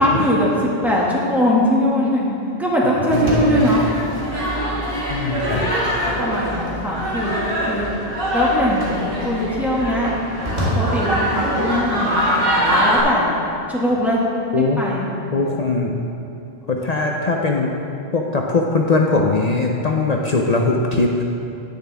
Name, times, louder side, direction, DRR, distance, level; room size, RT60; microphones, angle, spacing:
voice 1, 0.0-3.8 6.2-7.9 8.3-10.1 10.7-13.4 13.7-14.2 14.5-15.1, equal, ahead, -6 dB, 1.7 m, -21 dB
voice 2, 3.1-3.7 5.1-5.7 14.5-14.8 15.3-15.9 16.7-17.7 18.1-21.2, left 3 dB, 45° left, 0 dB, 0.7 m, -20 dB
sound 1, 3.1-13.0, equal, 60° right, 2.1 m, -23 dB
10.5 x 9.3 x 3.4 m, 2.7 s
omnidirectional pair, 1.0 m